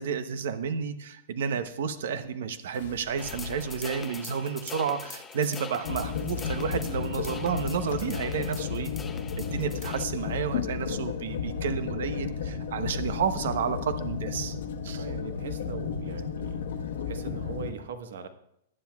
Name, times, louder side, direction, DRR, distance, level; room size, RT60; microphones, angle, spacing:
voice 1, 0.0-8.9 9.5-14.6 14.8-15.0, right 7 dB, 60° right, 11 dB, 0.8 m, -31 dB
sound 1, 2.7-4.4 5.8-7.3 9.9-10.7 13.0-14.1, left 6 dB, 70° left, 1.6 m, -46 dB
sound 2, 3.2-10.0, left 5 dB, 10° left, 0.4 m, -43 dB
sound 3, 5.8-17.7, left 6 dB, 90° left, 1.2 m, -33 dB
voice 2, 14.9-16.6 17.1-18.3, right 5 dB, 80° right, 8 dB, 1.3 m, -40 dB
19.0 x 9.9 x 2.4 m, 0.77 s
supercardioid pair, 175°, 0 cm